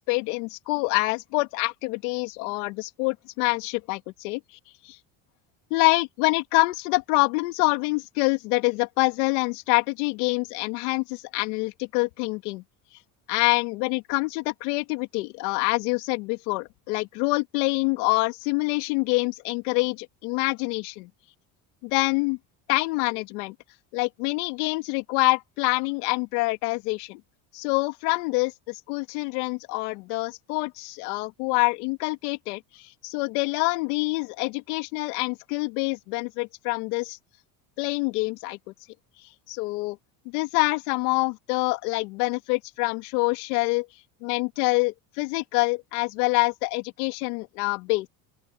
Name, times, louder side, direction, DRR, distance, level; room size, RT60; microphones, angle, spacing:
voice 1, 0.0-4.4 4.8-5.0 5.7-12.6 13.3-21.1 21.8-22.4 22.7-23.5 23.9-27.2 27.5-37.2 37.8-38.6 39.5-40.0 40.3-43.9 44.2-48.1, left 25 dB, 85° left, 2.6 m, -26 dB
open air
supercardioid pair, 95°, 45 cm